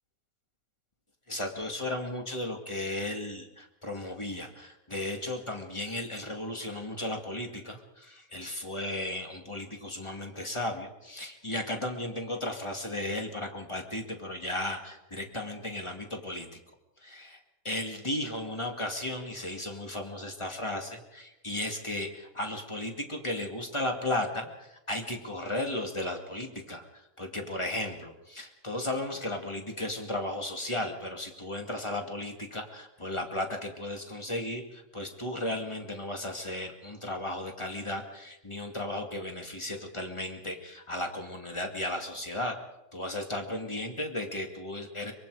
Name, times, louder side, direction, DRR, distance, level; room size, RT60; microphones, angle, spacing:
voice 1, 1.3-16.6 17.0-17.4 17.6-42.6 42.9-45.1, left 1 dB, 10° left, 3 dB, 1.5 m, -35 dB
24.0 x 23.0 x 4.9 m, 0.93 s
omnidirectional pair, 3.8 m